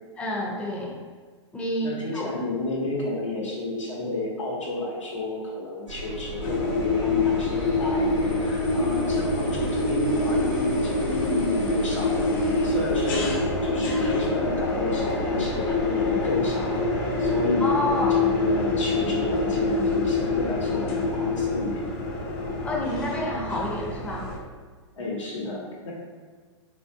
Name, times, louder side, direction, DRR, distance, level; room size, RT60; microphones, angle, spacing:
voice 1, 0.2-0.9 1.5-2.3 17.6-18.2 22.6-24.3, left 1 dB, 10° left, -3 dB, 0.5 m, -29 dB
voice 2, 1.8-12.3 12.6-16.7 17.2-21.7 25.0-25.9, left 2 dB, 80° left, -4 dB, 1.0 m, -31 dB
Engine, 5.9-17.4, right 3 dB, 70° right, 0.7 m, -38 dB
sound 1, 6.4-24.4, left 3 dB, 45° left, 0.7 m, -25 dB
3.2 x 2.5 x 2.6 m, 1.5 s
hypercardioid pair, 115°, 16 cm